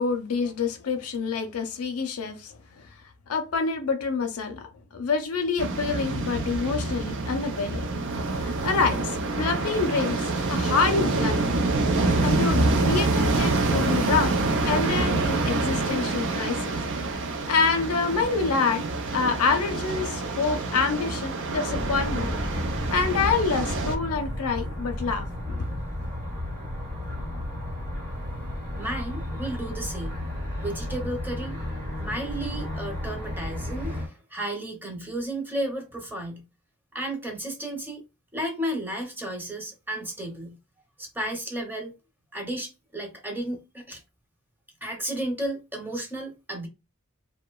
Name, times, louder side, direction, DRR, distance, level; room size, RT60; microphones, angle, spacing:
voice 1, 0.0-2.9 3.3-8.0 8.4-11.5 12.2-16.8 17.5-18.8 19.1-22.3 22.9-25.6, left 5 dB, 80° left, 0.5 m, -27 dB
sound 1, 5.6-24.0, right 2 dB, 60° right, 0.5 m, -26 dB
sound 2, 21.7-34.1, left 1 dB, 40° right, 1.1 m, -33 dB
voice 2, 28.8-30.2 30.6-31.6 32.0-36.4 36.9-38.0 38.3-40.6 41.0-41.9 42.3-44.0 44.8-46.7, right 1 dB, 10° right, 0.8 m, -33 dB
2.8 x 2.2 x 2.2 m
head